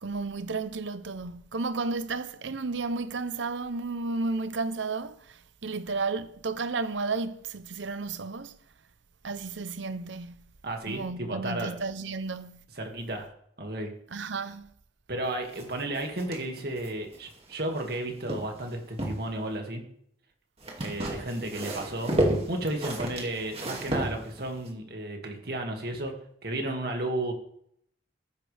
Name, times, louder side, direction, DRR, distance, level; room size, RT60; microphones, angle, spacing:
voice 1, 0.0-8.6 9.2-10.5 10.9-12.6 14.1-14.7, right 3 dB, 80° right, 0.8 m, -33 dB
voice 2, 10.6-11.7 12.8-13.3 13.6-13.9 15.1-19.8 20.8-22.1 22.5-26.1 26.4-27.3, right 1 dB, 55° right, 2.2 m, -33 dB
sound 1, 15.5-18.0 18.3-19.3 20.6-24.7, right 1 dB, 35° right, 2.3 m, -32 dB
14.5 x 10.5 x 3.5 m
head